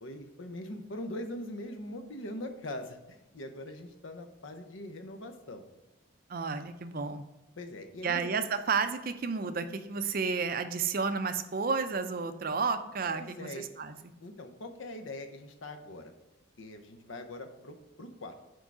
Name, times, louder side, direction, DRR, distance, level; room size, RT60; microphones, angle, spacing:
voice 1, 0.0-5.6 7.6-8.3 13.1-13.6 14.2-16.1 16.6-18.3, left 1 dB, 70° left, 7 dB, 0.8 m, -42 dB
voice 2, 6.3-7.2 8.0-14.0, right 5 dB, 45° right, 10 dB, 0.5 m, -31 dB
6.3 x 4.7 x 4.7 m, 1.0 s
head